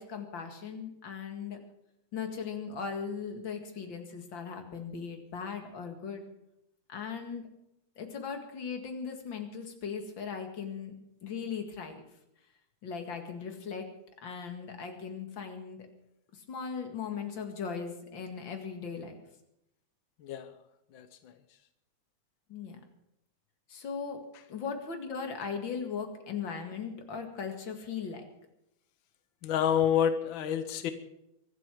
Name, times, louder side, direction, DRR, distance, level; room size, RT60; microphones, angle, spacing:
voice 1, 0.0-1.6 2.1-6.3 6.9-7.5 8.0-10.9 11.2-12.0 12.8-13.9 14.2-15.9 16.3-19.2 22.5-22.8 23.7-24.2 24.5-28.2, left 6 dB, 45° left, 5 dB, 2.4 m, -38 dB
voice 2, 20.9-21.3 29.4-30.9, left 9 dB, 75° left, 10 dB, 1.1 m, -28 dB
24.0 x 8.2 x 6.2 m, 0.82 s
omnidirectional pair, 3.4 m